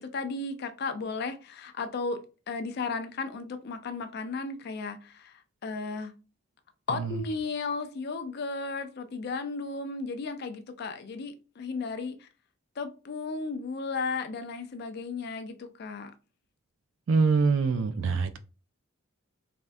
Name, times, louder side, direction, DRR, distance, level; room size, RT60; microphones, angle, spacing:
voice 1, 0.0-6.1 6.9-12.3 12.8-16.1, left 4 dB, 50° left, 0.4 m, -35 dB
voice 2, 6.9-7.2 17.1-18.4, right 4 dB, 65° right, 0.3 m, -25 dB
3.4 x 2.2 x 2.5 m
head